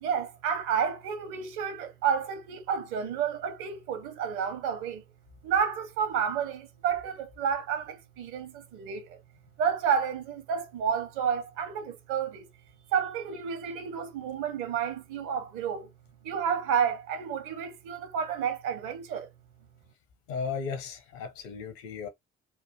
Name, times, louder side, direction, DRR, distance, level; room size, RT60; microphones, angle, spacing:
voice 1, 0.0-5.0 5.4-9.2 9.6-12.5 12.9-15.9 16.2-19.3, right 7 dB, 60° right, 0.9 m, -30 dB
voice 2, 20.3-22.1, left 5 dB, 65° left, 0.9 m, -35 dB
3.3 x 2.2 x 2.9 m
figure-of-eight pair, 45°, 36 cm